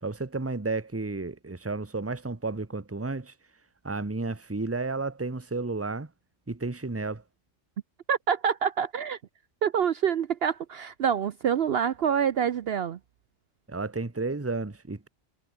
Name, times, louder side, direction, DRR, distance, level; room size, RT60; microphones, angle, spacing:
voice 1, 0.0-3.3 3.8-6.1 6.5-7.2 13.7-15.1, right 3 dB, 10° right, 1.1 m, -32 dB
voice 2, 8.1-9.2 9.6-13.0, right 8 dB, 60° right, 0.9 m, -26 dB
omnidirectional pair, 1.2 m